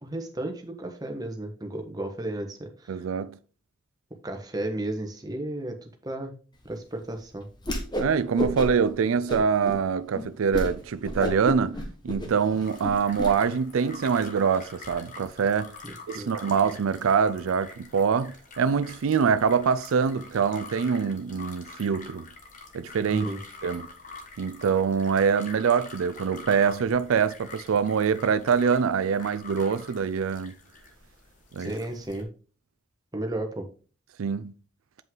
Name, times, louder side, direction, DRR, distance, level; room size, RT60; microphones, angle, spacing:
voice 1, 0.0-3.0 4.2-6.3 6.6-7.5 15.8-16.3 23.1-23.4 31.6-32.3 33.1-33.7, right 1 dB, 20° right, 1.2 m, -34 dB
voice 2, 2.9-3.4 8.0-15.7 16.1-22.2 22.7-23.3 23.6-23.9 24.4-30.5 31.5-31.7 34.2-34.5, right 6 dB, 90° right, 0.4 m, -24 dB
Whoosh swoosh swish, 7.6-8.1 8.4-8.9 9.3-9.8 10.1-10.2 10.5-10.7 11.0-13.3, left 1 dB, 20° left, 1.4 m, -30 dB
sound 1, 12.6-32.2, left 4 dB, 40° left, 1.3 m, -46 dB
7.7 x 5.4 x 3.8 m
head